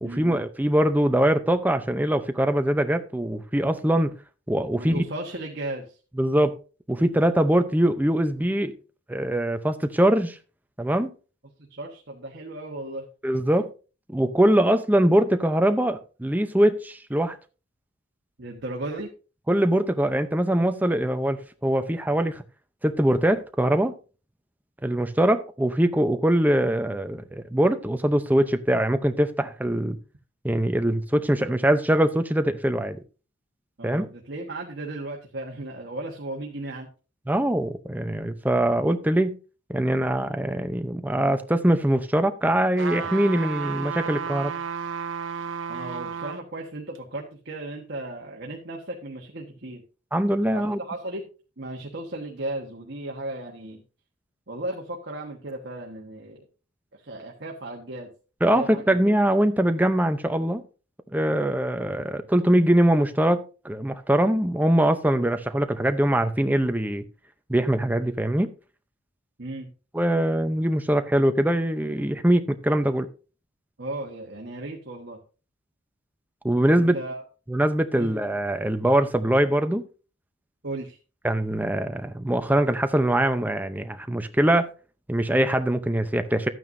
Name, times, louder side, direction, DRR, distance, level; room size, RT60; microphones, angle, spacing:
voice 1, 0.0-4.1 4.5-5.0 6.2-6.5 6.9-8.7 9.1-10.4 10.8-11.1 13.2-13.7 14.1-17.4 19.5-22.4 22.8-23.9 24.8-30.0 30.4-33.0 33.8-34.1 37.3-39.4 39.7-44.5 50.1-50.8 58.4-60.6 61.1-67.0 67.5-68.5 69.9-73.1 76.4-77.0 77.5-79.8 81.2-84.7 85.1-86.5, right 1 dB, 10° right, 0.6 m, -22 dB
voice 2, 4.7-6.0 11.7-13.1 18.4-19.1 33.8-36.9 45.7-49.8 50.5-51.3 51.6-53.8 54.5-56.5 56.9-58.1 58.5-58.9 69.4-69.7 73.8-75.2 76.7-77.2 77.9-78.4 80.6-81.0, right 2 dB, 55° right, 1.4 m, -35 dB
sound 1, 42.8-46.4 46.9-47.0, right 6 dB, 70° right, 0.8 m, -32 dB
12.5 x 9.2 x 2.7 m
head